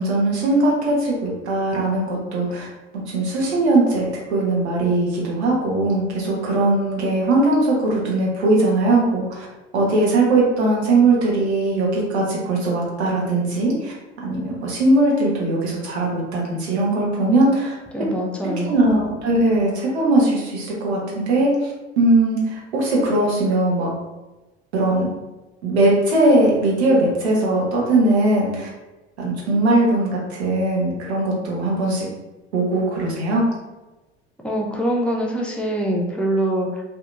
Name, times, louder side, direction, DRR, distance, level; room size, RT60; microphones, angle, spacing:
voice 1, 0.0-2.7 3.1-9.4 9.7-13.9 14.2-17.7 18.7-23.9 24.7-25.1 25.6-28.7 29.2-32.0 32.5-33.5, right 2 dB, 80° right, -3 dB, 0.9 m, -20 dB
voice 2, 17.9-18.8 34.4-36.8, right 1 dB, 5° left, -2 dB, 0.4 m, -24 dB
2.7 x 2.2 x 2.4 m, 1.1 s
hypercardioid pair, 70°, 32 cm